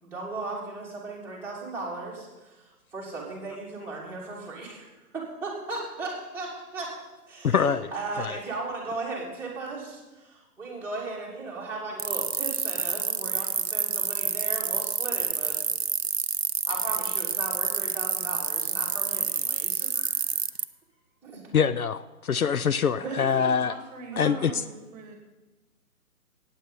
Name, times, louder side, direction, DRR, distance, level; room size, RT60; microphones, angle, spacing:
voice 1, 0.0-4.8 5.1-6.9 7.3-15.6 16.7-20.4 21.2-21.4 23.0-23.1 24.1-24.6, right 3 dB, 5° right, -7 dB, 2.9 m, -37 dB
voice 2, 7.4-8.4 21.5-23.8 24.2-24.6, left 7 dB, 65° left, 14 dB, 0.6 m, -25 dB
sound 1, 12.0-20.6, right 6 dB, 45° right, 0.5 m, -28 dB
voice 3, 22.9-25.2, right 4 dB, 25° right, 4 dB, 2.1 m, -42 dB
15.0 x 9.1 x 5.4 m, 1.1 s
figure-of-eight pair, 135°, 46 cm